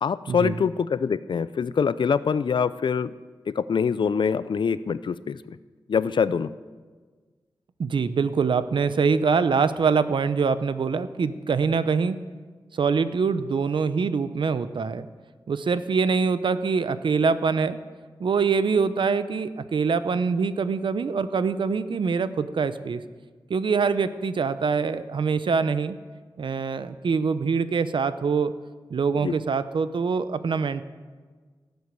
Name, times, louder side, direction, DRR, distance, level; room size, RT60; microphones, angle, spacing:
voice 1, 0.0-3.1 3.5-5.6 5.9-6.5 29.2-29.4, left 6 dB, 70° left, 16 dB, 0.5 m, -24 dB
voice 2, 7.8-12.2 12.7-15.1 15.5-17.8 18.2-23.0 23.5-26.0 26.4-28.5 28.9-30.8, right 5 dB, 80° right, 12 dB, 0.7 m, -24 dB
17.5 x 8.1 x 6.8 m, 1.4 s
wide cardioid pair, 110°, 8 cm